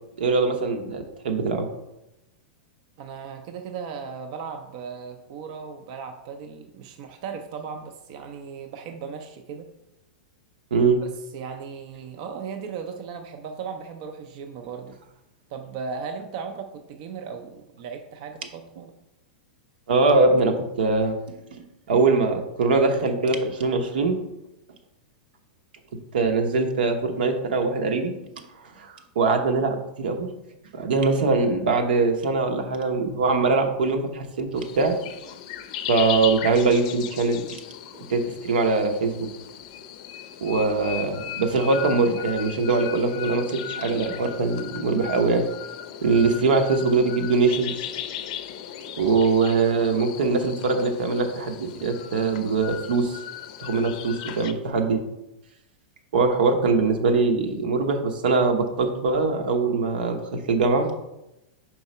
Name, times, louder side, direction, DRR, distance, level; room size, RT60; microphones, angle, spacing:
voice 1, 0.2-1.7 10.7-11.0 19.9-21.2 21.5-24.2 26.1-28.1 28.8-28.9 29.1-30.3 30.7-34.9 35.9-37.6 38.1-39.3 40.4-45.4 46.0-47.7 49.0-53.2 53.6-55.0 56.1-60.9, right 4 dB, 85° right, 5 dB, 1.0 m, -22 dB
voice 2, 3.0-9.7 11.0-15.0 15.5-18.9, right 6 dB, 45° right, 5 dB, 0.5 m, -37 dB
sound 1, 34.5-54.5, left 10 dB, 45° left, 0.5 m, -37 dB
4.7 x 4.0 x 5.4 m, 0.90 s
supercardioid pair, 165°, 5 cm